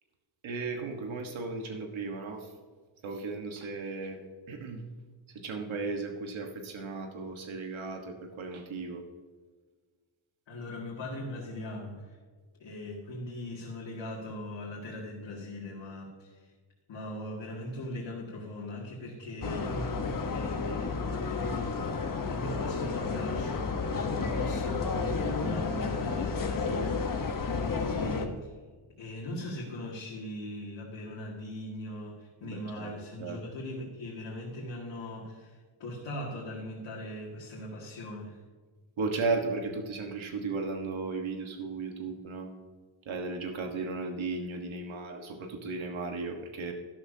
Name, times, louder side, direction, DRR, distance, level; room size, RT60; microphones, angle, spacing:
voice 1, 0.4-2.5 3.0-4.2 4.5-4.9 5.3-9.0 32.4-32.9 33.2-33.4 39.0-42.5 43.1-46.7, right 3 dB, 85° right, 3 dB, 1.4 m, -35 dB
voice 2, 10.5-12.2 12.5-16.5 16.9-28.5 29.0-38.4, left 1 dB, 75° left, -5 dB, 2.4 m, -40 dB
sound 1, 19.4-28.3, left 4 dB, 45° left, 1.1 m, -31 dB
12.5 x 12.5 x 2.8 m, 1.5 s
wide cardioid pair, 175°, 46 cm